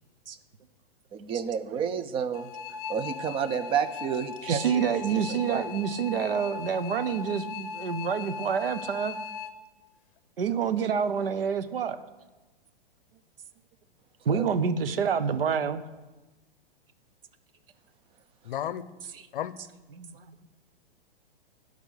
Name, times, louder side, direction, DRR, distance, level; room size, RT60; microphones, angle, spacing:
voice 1, 1.1-2.5 2.9-4.8 5.4-5.6 14.3-14.5, right 7 dB, 20° right, 11 dB, 0.5 m, -30 dB
sound 1, 2.3-9.5, left 5 dB, 35° left, 0.9 m, -39 dB
voice 2, 4.4-9.2 10.4-12.0 14.2-15.8 19.9-20.5, right 7 dB, 70° right, 11 dB, 0.9 m, -28 dB
voice 3, 18.4-18.9 19.3-19.6, left 11 dB, 60° left, 16 dB, 0.7 m, -32 dB
11.5 x 5.3 x 8.3 m, 1.1 s
figure-of-eight pair, 115°, 30 cm